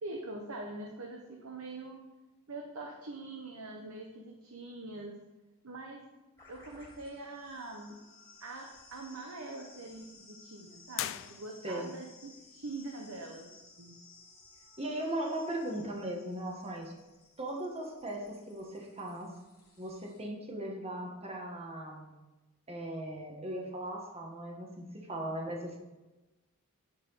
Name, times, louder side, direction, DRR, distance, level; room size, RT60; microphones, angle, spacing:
voice 1, 0.0-2.0 2.5-5.2 5.6-6.1 6.5-8.0 8.4-13.5 13.8-14.0, right 2 dB, 70° right, 1 dB, 1.0 m, -43 dB
sound 1, 6.4-20.2, left 3 dB, 15° left, 3.3 m, -58 dB
sound 2, 10.9-12.0, left 14 dB, 60° left, 0.3 m, -39 dB
voice 2, 14.8-16.9 17.4-19.3 19.8-22.1 22.7-25.8, right 1 dB, 30° right, 0 dB, 1.5 m, -38 dB
9.7 x 4.7 x 5.8 m, 1.1 s
head